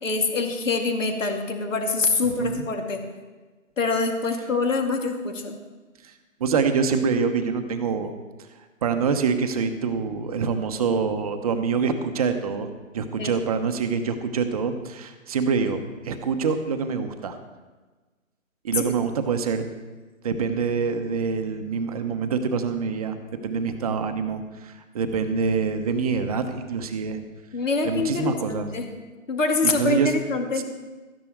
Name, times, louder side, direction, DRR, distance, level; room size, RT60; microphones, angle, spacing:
voice 1, 0.0-3.0 3.8-5.6 13.2-13.4 18.8-18.9 27.5-28.9 29.3-30.6, left 3 dB, 65° left, 3 dB, 2.4 m, -25 dB
voice 2, 6.4-8.1 8.8-17.4 18.6-19.7 20.2-27.2 27.8-28.7 29.6-30.1 30.5-30.6, right 5 dB, 25° right, 7 dB, 0.8 m, -25 dB
13.5 x 10.0 x 4.6 m, 1.3 s
hypercardioid pair, 150°, 41 cm